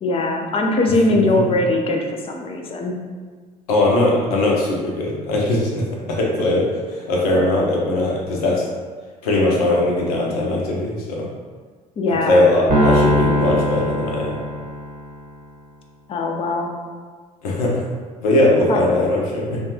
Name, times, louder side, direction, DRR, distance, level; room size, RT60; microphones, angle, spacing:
voice 1, 0.0-3.0 12.0-12.5 16.1-16.8 18.7-18.8, left 2 dB, 30° left, 2 dB, 0.5 m, -20 dB
voice 2, 3.7-8.7 9.2-11.3 12.3-14.4 17.4-17.9 18.2-19.6, left 1 dB, 70° left, -2 dB, 0.6 m, -19 dB
Piano, 12.7-15.1, equal, 45° right, 0.7 m, -20 dB
3.2 x 2.2 x 2.8 m, 1.5 s
figure-of-eight pair, 50°, 20 cm